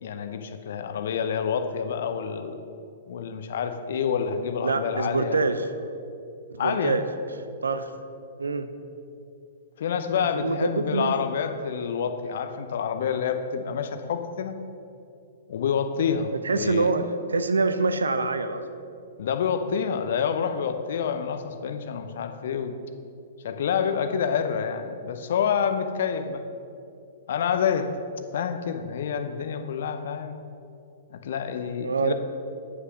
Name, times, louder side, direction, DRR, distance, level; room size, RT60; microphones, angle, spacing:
voice 1, 0.0-2.6 3.1-5.5 6.6-7.0 9.8-14.6 15.5-16.9 19.2-22.8 23.4-26.4 27.3-27.9 28.3-30.4 31.1-32.1, left 7 dB, 55° left, 9 dB, 0.7 m, -28 dB
voice 2, 4.6-5.7 6.6-7.0 7.6-7.9 8.4-8.7 10.3-11.1 16.3-18.6 31.8-32.1, right 3 dB, 70° right, 10 dB, 0.6 m, -25 dB
9.5 x 6.0 x 6.3 m, 2.6 s
figure-of-eight pair, 110°, 0 cm